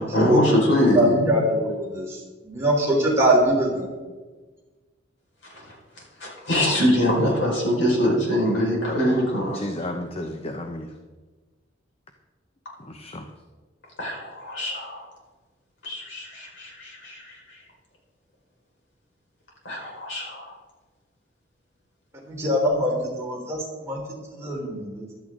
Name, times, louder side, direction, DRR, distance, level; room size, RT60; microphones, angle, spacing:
voice 1, 0.0-1.4 5.4-5.7 6.2-9.7 14.0-15.1 15.8-17.6 19.6-20.5, equal, 75° left, -2 dB, 5.2 m, -23 dB
voice 2, 0.9-2.2 2.4-3.9 22.3-23.6 23.8-24.0 24.3-25.0, right 1 dB, 15° right, -3 dB, 3.4 m, -22 dB
voice 3, 9.5-10.9 12.8-13.3, left 1 dB, 30° left, 5 dB, 0.8 m, -33 dB
15.0 x 12.5 x 3.8 m, 1.3 s
head